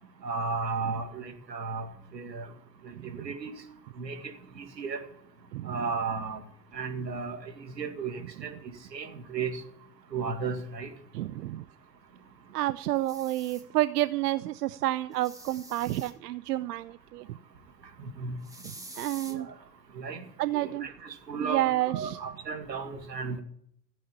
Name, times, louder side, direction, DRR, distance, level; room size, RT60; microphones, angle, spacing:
voice 1, 0.2-1.9 2.1-2.5 3.2-3.6 4.0-4.2 4.6-5.0 5.6-6.4 6.7-8.6 8.9-9.6 10.1-10.9 18.0-18.3 19.3-19.4 20.0-20.2 20.5-23.4, right 4 dB, 85° right, 5 dB, 2.3 m, -34 dB
voice 2, 2.9-3.3 5.5-5.8 11.1-11.6 12.5-17.4 19.0-19.5 20.4-20.9 21.4-22.2, right 15 dB, 70° right, 15 dB, 0.7 m, -30 dB
sound 1, 13.0-13.6 15.1-16.1 18.4-19.3, right 2 dB, 5° right, 2.2 m, -46 dB
14.5 x 8.7 x 8.8 m, 0.69 s
hypercardioid pair, 85°, 49 cm